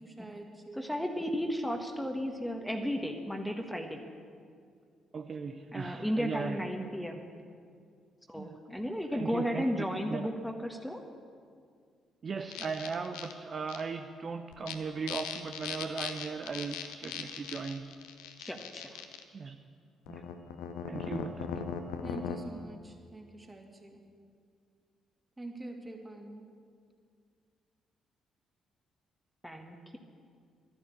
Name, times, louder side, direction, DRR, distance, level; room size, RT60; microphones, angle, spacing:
voice 1, 0.0-0.9 22.0-24.0 25.4-26.5, right 1 dB, 15° right, 2 dB, 2.6 m, -45 dB
voice 2, 0.7-4.0 5.7-7.2 8.3-11.0 18.4-19.0 29.4-30.0, equal, 5° left, 4 dB, 1.5 m, -34 dB
voice 3, 5.1-6.6 8.4-8.5 9.1-10.3 12.2-17.8 19.3-19.6 20.1-20.3 20.9-21.6, right 5 dB, 40° right, 6 dB, 0.7 m, -38 dB
sound 1, 12.5-13.3 13.7-13.8 14.5-14.7 15.1-19.2 20.1-22.4, left 8 dB, 70° left, 0.9 m, -39 dB
13.0 x 11.0 x 8.5 m, 2.2 s
figure-of-eight pair, 40°, 0 cm